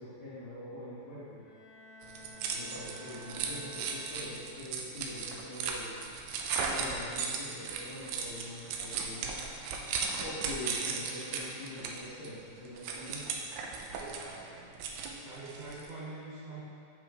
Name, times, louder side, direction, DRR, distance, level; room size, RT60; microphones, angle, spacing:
voice 1, 0.0-1.4 2.5-6.0 6.7-9.3 10.2-13.5, left 1 dB, 65° left, -12 dB, 1.7 m, -44 dB
Bowed string instrument, 1.4-4.8, right 1 dB, 90° left, 1.7 m, -52 dB
sound 1, 2.0-15.9, right 5 dB, 80° right, 2.3 m, -37 dB
voice 2, 13.9-14.6 15.3-16.6, right 3 dB, 65° right, -8 dB, 2.4 m, -45 dB
8.8 x 3.4 x 4.7 m, 2.4 s
omnidirectional pair, 4.8 m